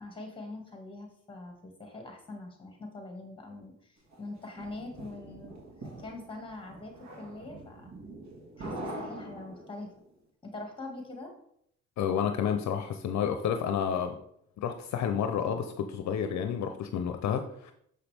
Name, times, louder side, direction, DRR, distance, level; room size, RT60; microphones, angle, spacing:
voice 1, 0.0-5.5 5.8-7.9 8.6-9.9 10.4-11.3, left 2 dB, 15° left, 3 dB, 2.0 m, -43 dB
sound 1, 4.1-10.0, right 1 dB, 65° right, 1.9 m, -44 dB
voice 2, 12.0-14.2 14.6-17.7, left 8 dB, 65° left, 7 dB, 0.6 m, -30 dB
6.5 x 5.7 x 3.4 m, 0.70 s
cardioid pair, 90°, 30 cm